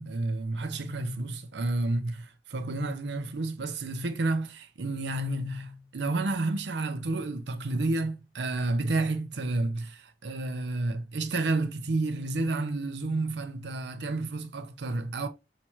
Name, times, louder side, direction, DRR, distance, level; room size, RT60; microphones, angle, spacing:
voice 1, 0.0-15.3, right 2 dB, 70° right, 0.6 m, -30 dB
5.7 x 2.8 x 3.0 m
head